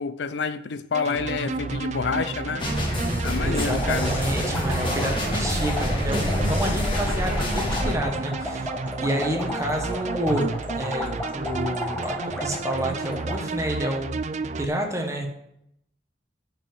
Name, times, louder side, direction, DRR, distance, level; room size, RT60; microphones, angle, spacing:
voice 1, 0.0-2.7 3.2-4.1, left 5 dB, 70° left, 0.5 m, -28 dB
sound 1, 0.9-14.7, right 4 dB, 40° right, 0.4 m, -32 dB
sound 2, 2.6-7.9, left 1 dB, 25° left, 1.7 m, -26 dB
sound 3, 3.4-13.4, left 1 dB, 10° left, 1.4 m, -34 dB
voice 2, 3.4-8.7 9.0-10.4 10.7-15.3, right 1 dB, 15° right, 1.3 m, -29 dB
6.8 x 6.1 x 7.3 m
head